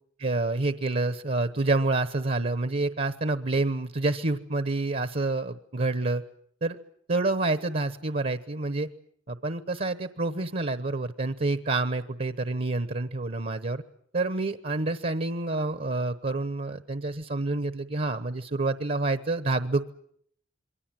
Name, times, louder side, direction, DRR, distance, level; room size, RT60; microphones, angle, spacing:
voice 1, 0.2-6.2 6.6-6.8 7.1-8.9 9.3-13.8 14.1-19.9, right 2 dB, 45° right, 12 dB, 1.0 m, -28 dB
28.0 x 23.0 x 7.6 m, 0.66 s
head